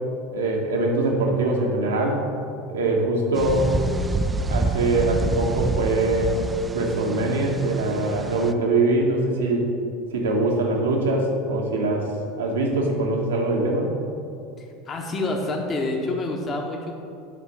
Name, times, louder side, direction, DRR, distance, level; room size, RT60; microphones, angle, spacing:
voice 1, 0.3-2.2 2.7-3.8 4.5-6.4 6.7-9.7 10.1-12.1 12.4-13.9, right 2 dB, 70° right, 0 dB, 1.3 m, -23 dB
sound 1, 3.4-8.5, right 2 dB, 15° right, 0.4 m, -27 dB
voice 2, 14.6-16.9, left 2 dB, 30° left, 1 dB, 1.2 m, -28 dB
8.2 x 5.0 x 6.5 m, 2.5 s
figure-of-eight pair, 75°, 0 cm